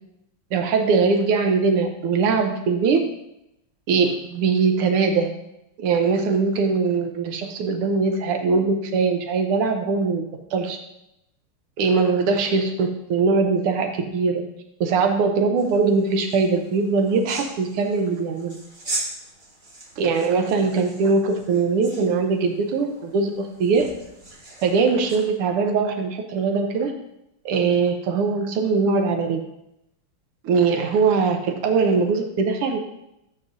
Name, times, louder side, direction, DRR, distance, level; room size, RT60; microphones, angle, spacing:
voice 1, 0.5-3.0 3.9-5.3 5.8-10.2 10.5-10.8 11.8-14.4 14.8-18.5 20.0-23.9 24.6-26.9 27.4-29.4 30.4-32.8, right 4 dB, 85° right, 5 dB, 1.7 m, -21 dB
sound 1, 15.6-25.3, right 2 dB, 25° right, 1.3 m, -39 dB
13.0 x 7.5 x 2.6 m, 0.84 s
omnidirectional pair, 2.4 m